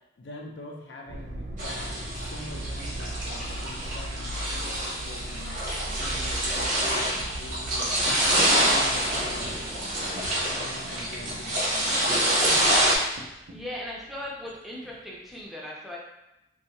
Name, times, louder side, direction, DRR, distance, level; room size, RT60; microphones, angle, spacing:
voice 1, 0.2-1.9 2.2-8.0 8.6-10.2 10.5-12.5, left 2 dB, 85° left, 0 dB, 0.5 m, -44 dB
sound 1, 1.1-15.2, right 1 dB, 90° right, 0.4 m, -39 dB
sound 2, 1.6-13.0, right 1 dB, 45° right, 0.7 m, -26 dB
voice 2, 13.5-16.0, left 1 dB, ahead, -4 dB, 0.4 m, -38 dB
2.6 x 2.3 x 2.9 m, 0.89 s
head